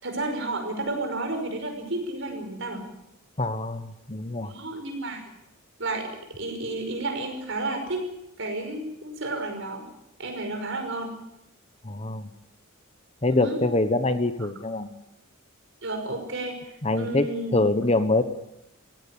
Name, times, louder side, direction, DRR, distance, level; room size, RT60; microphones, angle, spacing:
voice 1, 0.0-3.0 4.5-5.2 5.8-6.1 6.4-8.0 8.4-9.9 10.2-11.2 13.3-13.6 15.8-17.5, right 2 dB, 60° right, 4 dB, 5.6 m, -31 dB
voice 2, 3.4-4.5 11.8-12.3 13.2-14.9 16.8-18.2, left 2 dB, 30° left, 10 dB, 1.2 m, -24 dB
16.5 x 16.0 x 10.0 m, 0.84 s
head